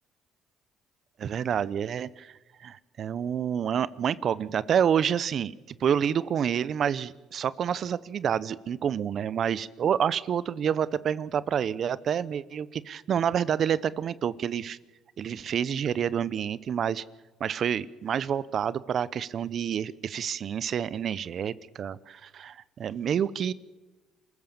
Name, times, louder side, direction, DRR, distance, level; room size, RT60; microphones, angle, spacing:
voice 1, 1.2-5.5 5.8-14.8 15.2-17.0 17.4-23.5, right 8 dB, 55° right, 18 dB, 0.7 m, -28 dB
27.5 x 14.5 x 7.2 m, 1.2 s
cardioid pair, 95°, 0 cm